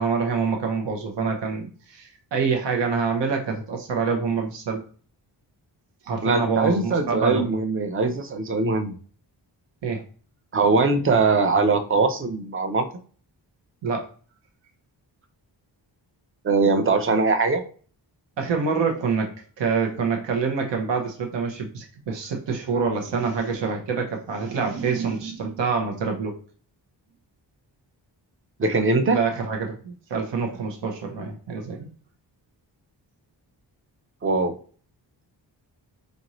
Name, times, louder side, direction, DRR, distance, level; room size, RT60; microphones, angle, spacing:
voice 1, 0.0-4.8 6.0-7.5 9.8-10.0 13.8-14.1 18.4-26.3 29.1-31.9, right 5 dB, 70° right, 2 dB, 0.9 m, -26 dB
voice 2, 6.2-8.9 10.5-12.9 16.4-17.6 28.6-29.2 34.2-34.5, right 3 dB, 30° right, 8 dB, 0.6 m, -21 dB
5.1 x 2.6 x 3.0 m, 0.42 s
wide cardioid pair, 110°, 44 cm